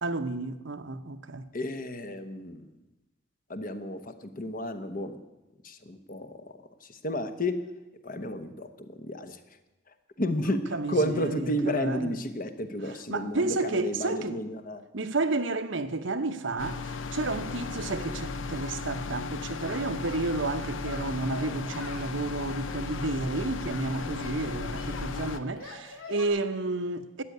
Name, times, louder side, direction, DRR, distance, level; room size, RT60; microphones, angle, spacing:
voice 1, 0.0-1.5 10.7-12.2 13.1-14.4 14.9-27.2, right 3 dB, 60° right, 0.9 m, -31 dB
voice 2, 1.5-2.6 3.5-5.2 5.6-6.4 6.9-7.6 8.0-9.4 10.2-14.8, equal, 40° left, 1.0 m, -32 dB
sound 1, 16.6-25.4, left 4 dB, 65° left, 0.7 m, -35 dB
Singing, 19.6-20.5 20.8-22.1 22.7-24.4 24.8-26.3, left 3 dB, 85° left, 2.9 m, -45 dB
13.5 x 8.8 x 9.3 m
head